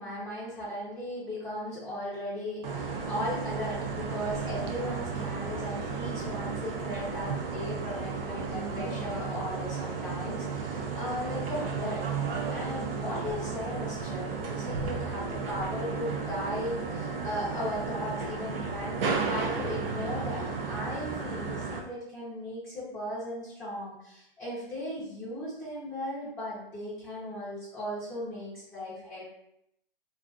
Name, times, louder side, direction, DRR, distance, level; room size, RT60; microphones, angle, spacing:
voice 1, 0.0-12.1 12.5-29.2, left 1 dB, 5° left, -14 dB, 0.6 m, -37 dB
sound 1, 2.6-21.8, right 5 dB, 70° right, 0.6 m, -34 dB
2.4 x 2.4 x 2.4 m, 0.77 s
hypercardioid pair, 145°, 29 cm